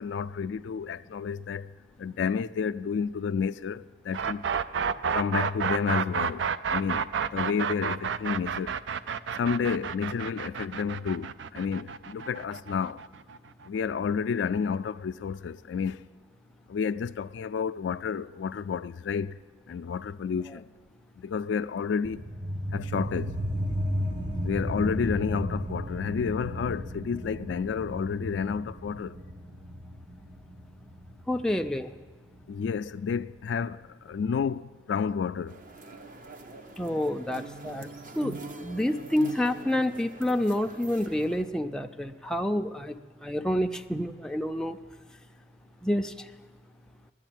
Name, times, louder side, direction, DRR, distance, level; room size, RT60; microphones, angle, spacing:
voice 1, 0.0-1.7 2.0-4.6 5.1-7.1 7.3-8.8 9.3-13.0 13.7-16.1 16.7-19.4 19.7-20.7 21.2-22.2 22.7-23.3 24.4-29.2 32.5-35.6, left 6 dB, 80° left, 0.3 m, -30 dB
sound 1, 4.1-14.0, right 7 dB, 80° right, 0.4 m, -30 dB
sound 2, 22.0-33.1, equal, 30° right, 1.1 m, -35 dB
voice 2, 31.3-31.9 36.8-37.9 38.1-43.0 43.2-44.8 45.8-46.3, left 1 dB, 5° left, 0.4 m, -28 dB
sound 3, 35.5-41.4, right 3 dB, 50° right, 0.7 m, -44 dB
10.5 x 8.7 x 9.1 m
head